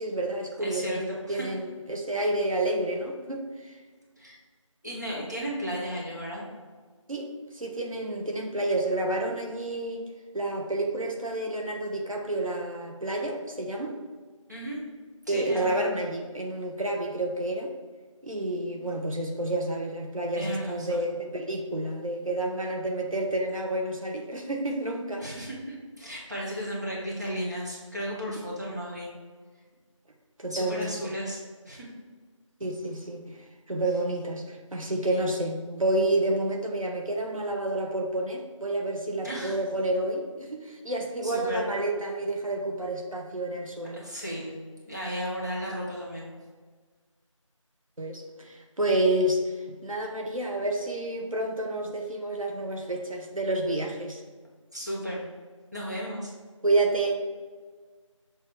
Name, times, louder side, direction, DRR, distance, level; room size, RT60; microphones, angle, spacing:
voice 1, 0.0-3.8 7.1-7.3 7.5-10.0 10.3-13.9 15.3-17.7 18.2-25.3 28.4-28.5 30.4-31.1 32.6-44.0 48.0-54.2 56.6-57.4, right 1 dB, 85° right, 1 dB, 1.0 m, -29 dB
voice 2, 0.6-1.5 4.2-4.4 4.8-6.4 14.5-14.8 15.3-15.7 20.3-21.0 25.2-29.1 30.5-31.9 39.2-39.6 41.2-41.6 43.9-44.5 44.9-46.3 54.7-55.2 55.7-56.3, equal, 35° right, -5 dB, 1.3 m, -34 dB
6.9 x 3.2 x 4.7 m, 1.5 s
figure-of-eight pair, 180°, 17 cm